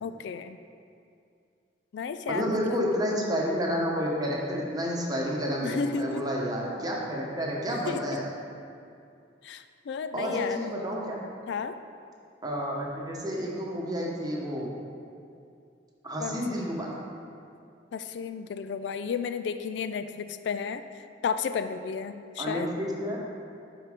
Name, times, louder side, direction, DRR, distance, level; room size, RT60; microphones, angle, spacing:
voice 1, 0.0-0.6 1.9-2.9 5.6-6.3 7.9-8.2 9.4-10.7 11.5-11.8 16.2-16.6 17.9-22.7, left 6 dB, 70° left, 11 dB, 0.3 m, -33 dB
voice 2, 2.3-8.3 10.1-11.2 12.4-14.7 16.0-16.9 22.4-23.2, equal, 20° right, -3 dB, 1.1 m, -30 dB
11.5 x 4.6 x 3.6 m, 2.4 s
head